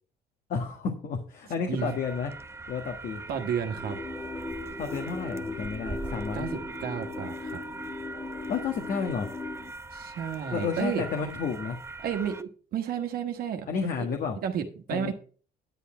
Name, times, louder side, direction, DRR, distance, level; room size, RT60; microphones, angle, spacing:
voice 1, 0.5-2.3 2.7-3.2 4.8-6.5 8.5-9.3 10.5-11.8 13.7-14.4 14.9-15.1, left 5 dB, 55° left, 3 dB, 1.5 m, -31 dB
sound 1, 1.8-12.4, right 3 dB, 15° right, 0.8 m, -41 dB
voice 2, 3.3-4.0 6.3-7.6 9.9-11.0 12.0-13.7 14.4-15.1, right 8 dB, 60° right, 6 dB, 1.3 m, -32 dB
sound 2, 3.7-9.7, left 3 dB, 25° left, 1.2 m, -38 dB
9.8 x 8.4 x 4.4 m, 0.40 s
cardioid pair, 110°, 17 cm